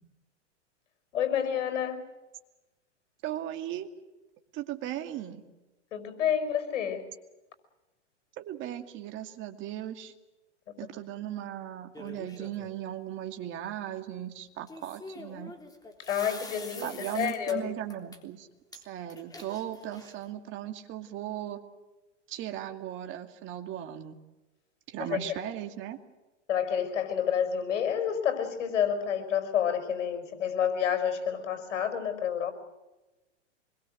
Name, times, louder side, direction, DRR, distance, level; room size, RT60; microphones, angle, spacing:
voice 1, 1.1-2.0 5.9-7.0 16.1-17.7 25.0-25.2 26.5-32.5, left 8 dB, 75° left, 8 dB, 5.4 m, -29 dB
voice 2, 3.2-3.9 4.5-5.4 8.4-10.1 10.8-15.5 16.8-18.5 18.7-21.7 22.3-24.2 24.9-26.0, right 11 dB, 35° right, 6 dB, 2.4 m, -37 dB
sound 1, 11.9-12.7 14.7-17.6 17.9-18.2 18.7-18.8 19.1-20.3, left 2 dB, 10° left, 3.5 m, -45 dB
26.0 x 21.5 x 7.9 m, 1.1 s
hypercardioid pair, 135°, 36 cm